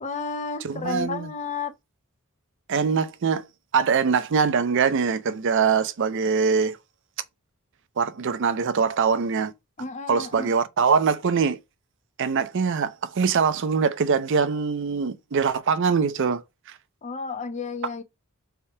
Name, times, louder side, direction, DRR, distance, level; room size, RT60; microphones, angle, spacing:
voice 1, 0.0-1.7 9.8-10.5 17.0-18.0, left 4 dB, 30° left, 0.6 m, -32 dB
voice 2, 0.6-1.3 2.7-3.4 3.7-6.8 8.0-9.5 10.1-11.6 12.2-16.4 16.7-16.8, right 5 dB, 55° right, 0.5 m, -23 dB
3.4 x 2.7 x 4.3 m
head